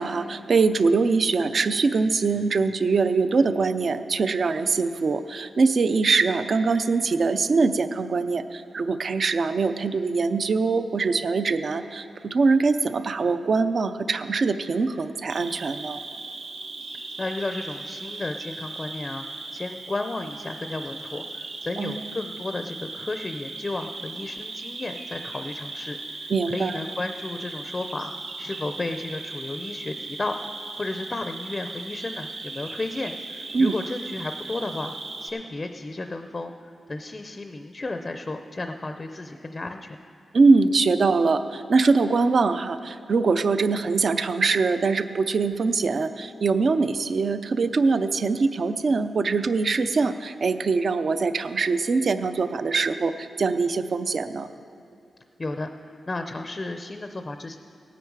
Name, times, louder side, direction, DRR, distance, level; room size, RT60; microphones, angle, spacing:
voice 1, 0.0-16.0 21.8-22.1 26.3-26.8 33.5-33.7 40.3-54.5, right 4 dB, 55° right, 11 dB, 0.5 m, -23 dB
Cricket, 15.3-35.3, right 3 dB, 90° right, 1.4 m, -38 dB
voice 2, 17.2-28.1 28.4-34.9 35.2-40.0 55.4-57.6, left 2 dB, 30° left, 7 dB, 0.5 m, -33 dB
17.5 x 9.2 x 4.7 m, 2.4 s
wide cardioid pair, 105°, 0 cm